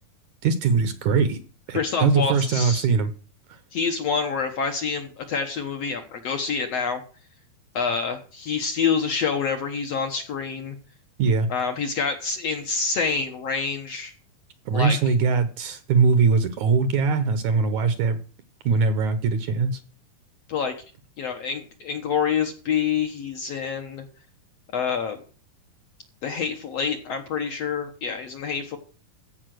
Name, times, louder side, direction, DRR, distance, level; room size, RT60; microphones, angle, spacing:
voice 1, 0.4-1.4 1.7-3.1 11.2-11.5 14.7-18.2 18.7-19.8, right 5 dB, 70° right, 2.1 m, -21 dB
voice 2, 1.7-2.9 3.7-7.0 7.7-10.8 11.5-14.1 14.7-15.0 20.5-20.7 21.2-24.1 24.7-25.2 26.2-28.8, left 6 dB, 60° left, 1.9 m, -27 dB
15.0 x 5.5 x 7.7 m
omnidirectional pair, 4.2 m